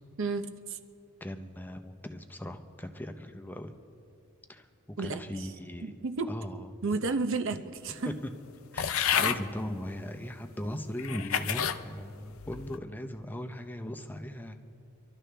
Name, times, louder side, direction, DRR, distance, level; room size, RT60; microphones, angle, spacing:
voice 1, 0.2-0.8 5.0-5.5 5.8-6.3 6.8-8.1, right 3 dB, 65° right, 9 dB, 0.8 m, -32 dB
voice 2, 1.2-3.7 4.5-6.0 6.3-6.7 8.1-8.3 8.7-14.5, left 1 dB, 10° left, 6 dB, 0.7 m, -38 dB
sound 1, 8.8-9.4 10.2-10.3 11.0-11.8 12.4-12.8, left 8 dB, 70° left, 0.6 m, -29 dB
25.0 x 12.5 x 3.4 m, 2.4 s
head